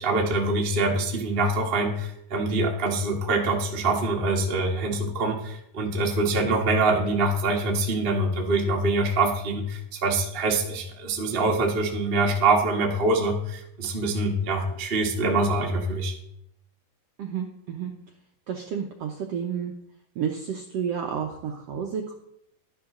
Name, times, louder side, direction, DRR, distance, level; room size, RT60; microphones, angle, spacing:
voice 1, 0.0-16.1, right 2 dB, 45° right, 1 dB, 0.7 m, -24 dB
voice 2, 17.2-17.9 18.5-19.7 20.1-22.1, right 7 dB, 75° right, 2 dB, 1.5 m, -31 dB
11.5 x 10.0 x 3.8 m, 0.75 s
omnidirectional pair, 4.0 m